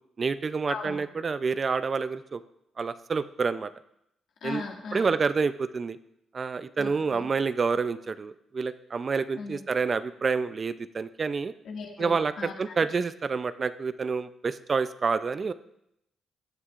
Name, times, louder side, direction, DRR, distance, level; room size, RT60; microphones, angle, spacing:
voice 1, 0.2-2.4 2.8-3.7 4.4-4.6 4.9-6.0 6.3-11.5 12.0-15.5, right 5 dB, 45° right, 13 dB, 0.5 m, -28 dB
voice 2, 4.4-5.1 6.8-7.3 9.4-9.6 11.6-12.5, left 4 dB, 75° left, 0 dB, 2.1 m, -38 dB
15.5 x 9.7 x 2.5 m, 0.78 s
cardioid pair, 70°, 0 cm